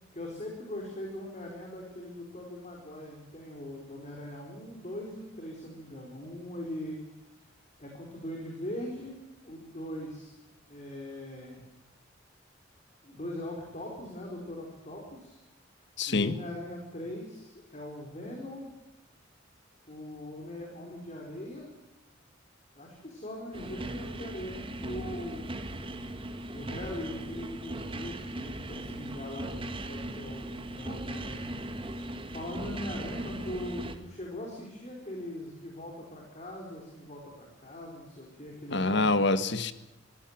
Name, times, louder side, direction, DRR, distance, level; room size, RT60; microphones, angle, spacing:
voice 1, 0.1-7.1 7.8-9.1 9.4-10.3 10.7-11.6 13.0-15.4 16.1-18.7 19.9-21.7 22.7-25.5 26.5-31.5 32.3-39.2, left 1 dB, 35° left, 0 dB, 4.8 m, -41 dB
voice 2, 16.0-16.4 38.7-39.7, left 3 dB, 65° left, 12 dB, 1.5 m, -26 dB
sound 1, 23.5-34.0, right 1 dB, 25° right, 1.8 m, -38 dB
24.0 x 16.5 x 7.5 m, 0.95 s
head